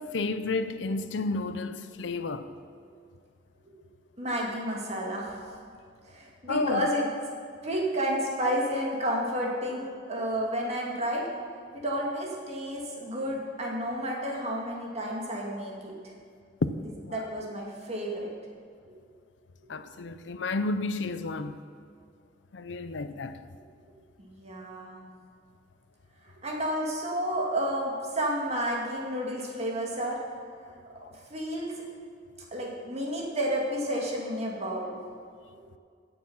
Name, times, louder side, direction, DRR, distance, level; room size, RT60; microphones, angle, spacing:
voice 1, 0.0-2.5 6.5-6.9 16.6-16.7 17.0-17.2 19.7-21.6 22.5-23.4, left 3 dB, 80° left, 0.6 m, -31 dB
voice 2, 4.2-5.4 6.1-7.1 7.6-11.3 11.7-15.9 17.1-18.3 18.9-19.0 24.2-25.0 26.2-30.2 31.3-31.7 32.5-34.9 35.6-35.7, equal, 35° right, 2.3 m, -31 dB
16.5 x 7.0 x 5.6 m
head